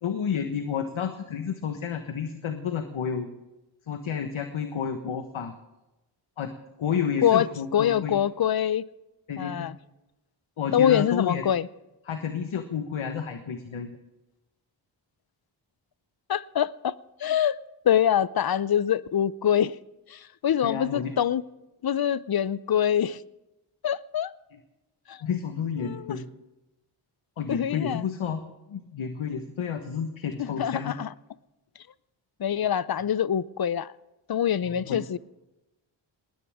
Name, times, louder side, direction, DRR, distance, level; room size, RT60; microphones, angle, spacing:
voice 1, 0.0-3.3 3.9-5.5 6.4-6.5 6.8-8.2 9.3-9.7 10.6-11.4 12.0-13.9 20.6-21.1 25.2-26.2 27.4-28.4 28.7-30.9 34.7-35.0, left 7 dB, 70° left, 1.4 m, -30 dB
voice 2, 7.7-8.8 9.4-9.8 10.7-11.7 16.3-16.9 17.2-17.6 17.9-19.8 20.1-21.4 21.8-23.2 23.8-24.3 25.1-25.2 25.8-26.1 27.5-28.0 30.4-31.1 32.4-33.9 34.3-35.2, left 9 dB, 50° left, 0.7 m, -24 dB
20.0 x 19.0 x 3.6 m
cardioid pair, 55°, 49 cm